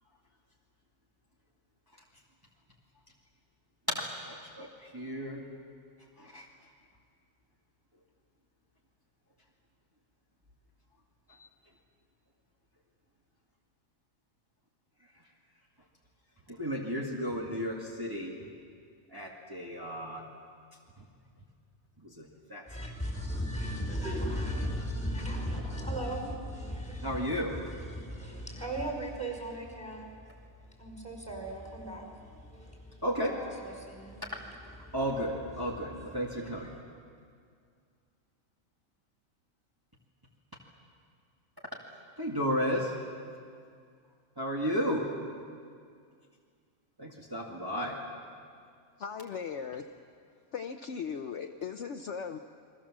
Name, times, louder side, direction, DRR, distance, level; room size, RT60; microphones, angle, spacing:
voice 1, 3.9-5.4 6.2-6.5 11.4-11.5 16.5-18.3 19.1-20.2 21.0-21.1 22.0-22.6 27.0-27.6 33.0-33.4 34.9-36.7 42.2-42.9 44.4-45.1 47.0-48.0, equal, 15° right, -3 dB, 2.1 m, -33 dB
voice 2, 22.7-30.5 30.8-34.4 34.8-35.0 35.6-36.8, equal, 5° left, 1 dB, 5.4 m, -37 dB
voice 3, 49.0-49.9 50.5-52.4, left 6 dB, 60° left, 6 dB, 1.1 m, -38 dB
30.0 x 22.0 x 7.4 m, 2.2 s
omnidirectional pair, 1.5 m